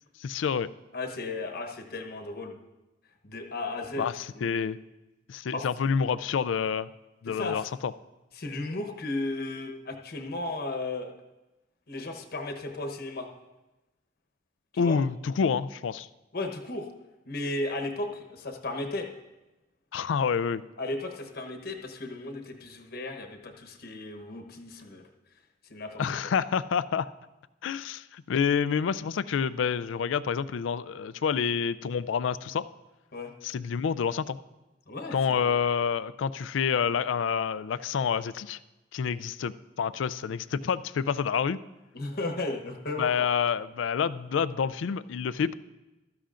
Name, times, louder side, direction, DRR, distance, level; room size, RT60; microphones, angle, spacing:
voice 1, 0.2-0.7 4.0-4.8 5.3-6.9 7.2-7.9 14.8-16.1 19.9-20.6 26.0-27.1 27.6-32.6 33.4-34.4 35.1-38.6 38.9-41.6 43.0-45.5, left 6 dB, 80° left, 16 dB, 0.4 m, -28 dB
voice 2, 0.9-2.5 3.2-4.1 4.3-4.7 5.5-5.7 7.3-7.7 8.3-11.1 11.9-13.3 14.7-15.0 16.3-16.9 17.3-19.1 20.8-25.1 25.7-26.2 33.1-33.3 34.9-35.6 41.9-43.1, left 2 dB, 55° left, 5 dB, 1.0 m, -35 dB
15.5 x 13.0 x 2.5 m, 1.0 s
head